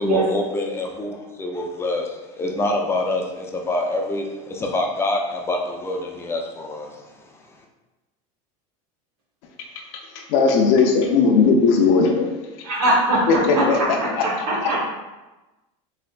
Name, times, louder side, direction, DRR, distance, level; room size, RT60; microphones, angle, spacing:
voice 1, 0.0-2.0 2.4-6.9, left 2 dB, 15° left, 0.4 m, -26 dB
voice 2, 10.1-12.3 13.3-14.2 14.6-14.7, left 4 dB, 65° left, 0.5 m, -18 dB
voice 3, 12.6-13.3 13.5-13.8 14.1-14.2 14.5-14.8, right 1 dB, 65° right, 1.0 m, -20 dB
3.3 x 2.8 x 2.4 m
supercardioid pair, 125°, 17 cm